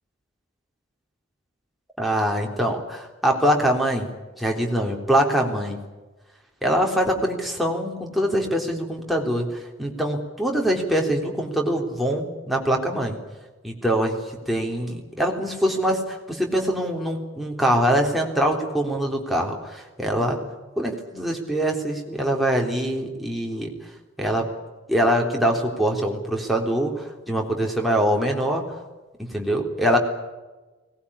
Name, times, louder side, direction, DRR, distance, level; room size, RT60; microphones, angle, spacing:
voice 1, 2.0-4.1 4.4-5.8 6.6-13.2 13.6-14.2 14.5-20.4 20.8-23.7 24.2-24.5 24.9-28.8 29.2-30.0, right 1 dB, ahead, 0 dB, 3.6 m, -23 dB
21.0 x 19.5 x 9.9 m, 1.2 s
head